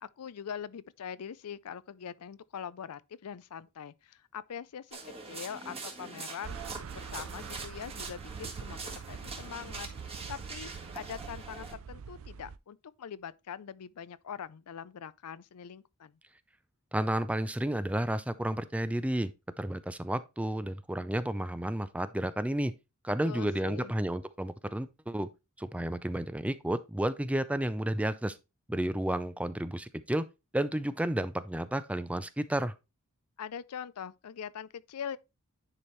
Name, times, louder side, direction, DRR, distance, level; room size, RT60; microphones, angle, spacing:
voice 1, 0.0-5.0 5.3-6.6 6.9-9.9 10.3-16.2 23.2-23.9 33.4-35.2, left 7 dB, 85° left, 0.5 m, -43 dB
sound 1, 4.9-11.7, right 3 dB, 25° right, 1.7 m, -43 dB
sound 2, 6.4-12.6, right 6 dB, 65° right, 0.4 m, -44 dB
voice 2, 16.9-19.3 19.6-22.7 23.0-25.3 25.6-28.4 28.7-30.3 30.5-32.7, right 1 dB, 5° right, 0.4 m, -31 dB
9.9 x 4.4 x 3.1 m
head